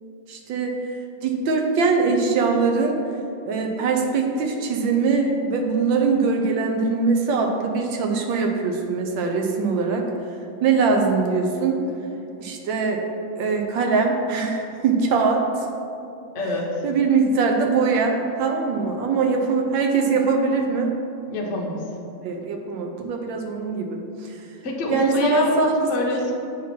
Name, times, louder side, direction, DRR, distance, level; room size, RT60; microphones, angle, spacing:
voice 1, 0.3-0.7 1.2-3.0 3.4-10.0 10.6-11.8 12.4-13.0 13.4-15.7 16.8-20.9 22.2-24.0 24.9-25.8, right 4 dB, 70° right, 2 dB, 1.3 m, -22 dB
voice 2, 16.3-16.8 21.3-21.9 24.6-25.5 25.9-26.3, left 2 dB, 55° left, -1 dB, 0.8 m, -26 dB
7.4 x 2.9 x 5.8 m, 2.7 s
omnidirectional pair, 2.2 m